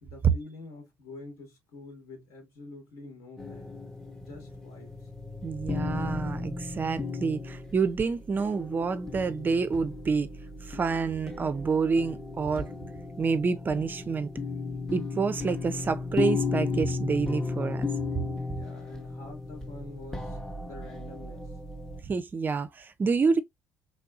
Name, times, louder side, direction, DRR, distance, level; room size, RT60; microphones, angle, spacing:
voice 1, 0.0-3.8 4.2-4.9 18.5-20.4 20.6-21.5, left 2 dB, 75° left, 1.9 m, -46 dB
sound 1, 3.4-22.0, left 3 dB, 10° left, 0.8 m, -35 dB
voice 2, 5.4-10.3 10.7-12.7 13.2-14.3 14.9-17.9 22.0-23.4, right 5 dB, 30° right, 0.4 m, -28 dB
3.3 x 2.6 x 2.4 m
supercardioid pair, 85°, 6 cm